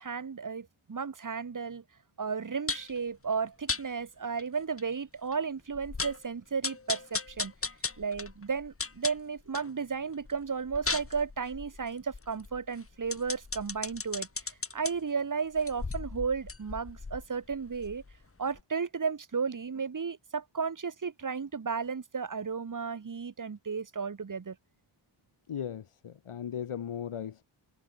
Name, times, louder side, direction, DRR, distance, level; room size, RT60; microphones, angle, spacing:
voice 1, 0.0-1.8 2.2-7.5 8.0-14.3 14.7-18.0 18.4-24.6, right 5 dB, 40° right, 2.4 m, -34 dB
sound 1, 2.7-3.0 3.7-3.8 4.4-4.5 4.8-4.9 5.3-5.4 5.7-6.2 6.6-9.7 10.1-14.9 15.5-18.2 18.5-18.6, left 4 dB, 25° left, 3.0 m, -37 dB
voice 2, 25.5-27.4, left 8 dB, 80° left, 5.1 m, -37 dB
wide cardioid pair, 125°, 49 cm